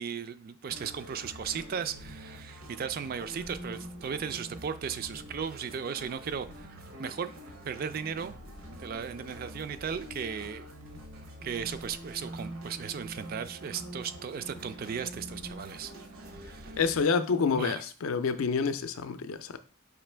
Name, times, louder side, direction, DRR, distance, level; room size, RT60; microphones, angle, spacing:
voice 1, 0.0-7.3 7.6-8.4 8.8-10.7 11.4-15.9 16.3-16.8 17.5-17.8, right 7 dB, 45° right, 0.3 m, -36 dB
sound 1, 0.7-17.0, equal, 80° right, 0.9 m, -45 dB
voice 2, 16.8-19.6, left 5 dB, 80° left, 0.4 m, -28 dB
4.9 x 3.0 x 3.3 m
head